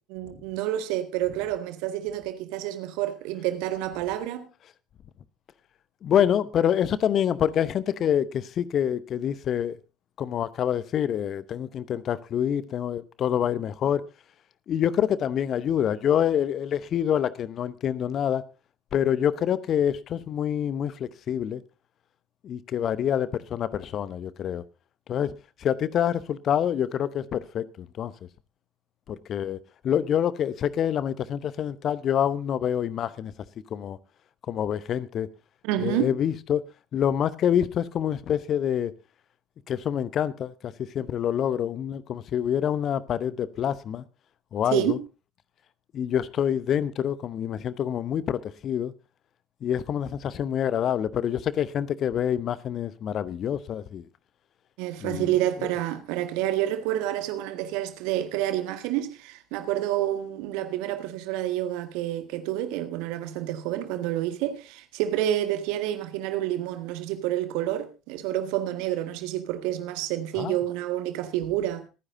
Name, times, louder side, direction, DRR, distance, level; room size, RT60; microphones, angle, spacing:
voice 1, 0.1-4.5 35.6-36.1 44.7-45.0 54.8-71.8, right 13 dB, 65° right, 1.7 m, -29 dB
voice 2, 6.0-9.8 10.2-14.0 14.7-18.4 18.9-21.6 22.4-24.6 25.1-28.1 29.1-33.3 33.7-34.0 34.5-35.3 35.8-36.6 36.9-38.9 39.7-44.0 44.5-45.0 45.9-48.9 49.6-54.1 55.0-55.3 70.4-70.6, left 9 dB, 45° left, 0.8 m, -26 dB
26.0 x 9.9 x 2.7 m
figure-of-eight pair, 60°, 0 cm